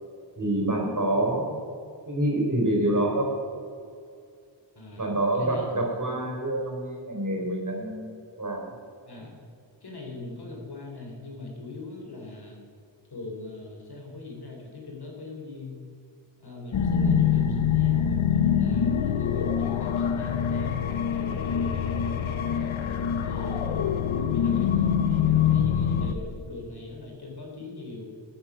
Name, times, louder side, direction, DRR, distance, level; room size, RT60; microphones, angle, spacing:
voice 1, 0.4-1.6 2.1-3.3 5.0-8.7, right 1 dB, 40° right, 0 dB, 4.1 m, -27 dB
voice 2, 4.8-5.1 5.3-5.8 9.1-9.4 9.8-12.6 13.1-15.9 16.4-22.7 23.2-23.8 24.2-28.1, left 3 dB, 55° left, 0 dB, 3.5 m, -41 dB
sound 1, 16.7-26.1, left 8 dB, 85° left, 0.8 m, -24 dB
14.0 x 8.9 x 6.3 m, 2.3 s
wide cardioid pair, 100°, 46 cm